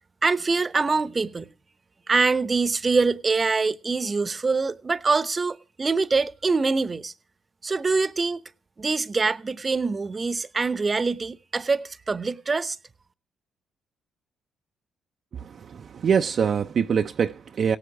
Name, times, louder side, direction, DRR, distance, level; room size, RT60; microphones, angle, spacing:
voice 1, 0.2-1.5 2.1-7.1 7.6-8.4 8.8-12.8, right 4 dB, 35° right, 0.9 m, -24 dB
voice 2, 15.3-17.8, right 7 dB, 55° right, 0.6 m, -24 dB
17.0 x 7.9 x 7.1 m
supercardioid pair, 60°, 0 cm